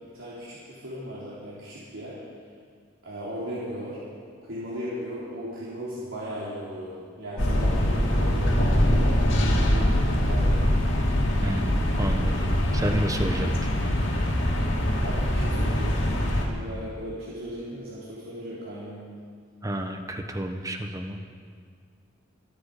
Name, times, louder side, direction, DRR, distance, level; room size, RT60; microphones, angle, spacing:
voice 1, 0.0-2.2 3.0-4.0 4.4-10.7 15.0-19.0, equal, 90° right, -9 dB, 3.6 m, -37 dB
sound 1, 7.4-16.5, equal, 70° left, 2.5 m, -23 dB
voice 2, 11.4-12.4 12.7-13.5 19.6-21.3, equal, 15° right, 4 dB, 1.0 m, -30 dB
26.0 x 9.2 x 4.9 m, 2.1 s
head